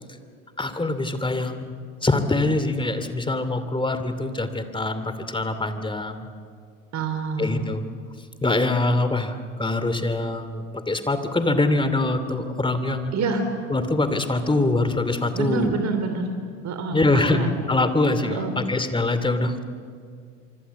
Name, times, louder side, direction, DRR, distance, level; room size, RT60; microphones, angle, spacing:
voice 1, 0.6-1.8 2.0-6.3 7.4-7.8 8.4-13.1 13.7-15.7 16.9-19.6, left 2 dB, 10° left, 10 dB, 2.7 m, -24 dB
voice 2, 6.9-7.7 13.1-13.4 15.3-16.3 16.6-17.5 18.2-18.6, right 4 dB, 40° right, 7 dB, 3.2 m, -27 dB
26.0 x 24.5 x 8.3 m, 2.2 s
hypercardioid pair, 75°, 40 cm